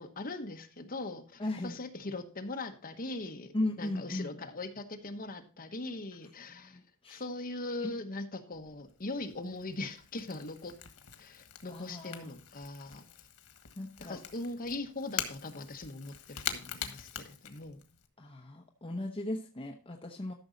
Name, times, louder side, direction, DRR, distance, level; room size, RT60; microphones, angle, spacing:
voice 1, 0.0-6.8 7.1-10.8 11.2-13.1 14.0-17.8, left 2 dB, 40° left, 5 dB, 1.2 m, -40 dB
voice 2, 1.4-1.8 3.5-4.4 6.6-7.2 7.8-7.9 11.7-12.3 13.8-14.2 18.2-20.3, left 1 dB, 25° left, 1 dB, 0.8 m, -37 dB
Crackle / Crack, 8.5-18.1, left 9 dB, 90° left, 1.4 m, -44 dB
13.0 x 6.2 x 4.0 m, 0.34 s
head